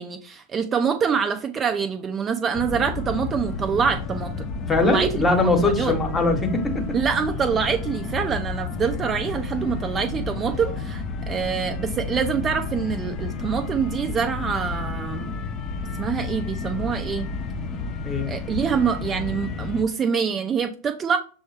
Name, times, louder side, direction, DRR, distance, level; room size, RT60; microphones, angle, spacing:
voice 1, 0.0-4.5 4.8-5.1 5.6-5.9 6.9-15.3 16.0-17.3 18.3-21.2, right 6 dB, 25° right, 6 dB, 0.4 m, -25 dB
sound 1, 2.5-19.8, left 4 dB, 35° left, 0.5 m, -31 dB
voice 2, 4.7-7.0 18.0-18.3, left 2 dB, 20° left, 5 dB, 0.9 m, -21 dB
6.2 x 2.1 x 3.2 m, 0.39 s
figure-of-eight pair, 95°, 0 cm